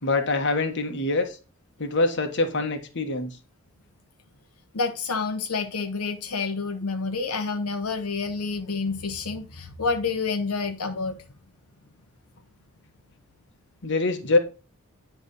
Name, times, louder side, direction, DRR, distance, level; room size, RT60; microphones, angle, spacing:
voice 1, 0.0-1.4 1.8-3.3 13.8-14.4, left 2 dB, 55° left, 1.3 m, -24 dB
voice 2, 4.7-11.2, left 4 dB, 85° left, 0.9 m, -28 dB
9.7 x 3.4 x 5.4 m
head